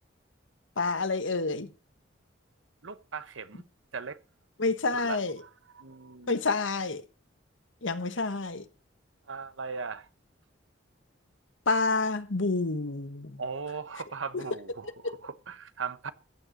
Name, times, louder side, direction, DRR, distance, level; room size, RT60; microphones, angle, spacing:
voice 1, 0.8-1.7 4.6-5.4 6.3-7.0 7.8-8.6 11.7-13.4 14.3-14.4 15.0-15.1, left 3 dB, 85° left, 1.3 m, -28 dB
voice 2, 2.8-3.6 3.9-4.2 4.9-6.4 9.3-10.1 13.4-16.1, right 5 dB, 90° right, 1.0 m, -38 dB
14.5 x 7.7 x 6.6 m
head